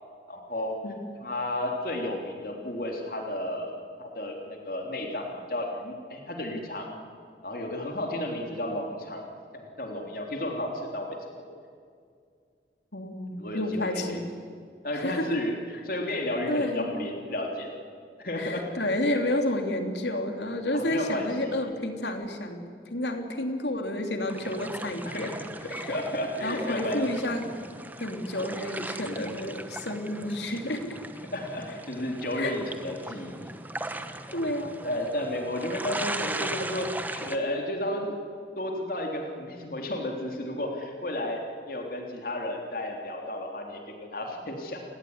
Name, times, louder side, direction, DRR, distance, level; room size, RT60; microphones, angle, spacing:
voice 1, 0.3-0.8 1.2-3.7 4.0-6.9 7.4-9.2 9.5-11.2 13.4-14.1 14.8-15.5 15.8-17.7 18.2-18.7 20.7-21.6 25.1-25.3 25.6-27.1 31.3-33.5 33.8-33.9 34.8-38.2 38.6-44.8, left 1 dB, 50° left, 2 dB, 3.6 m, -32 dB
voice 2, 12.9-14.2 14.9-15.4 16.5-16.9 18.4-25.3 25.7-25.9 26.4-27.5 28.0-31.0 32.4-32.5 34.1-34.8, left 1 dB, 75° left, 5 dB, 3.3 m, -30 dB
sound 1, 24.3-37.4, right 2 dB, 10° right, 1.2 m, -38 dB
29.0 x 20.5 x 9.7 m, 2.2 s
head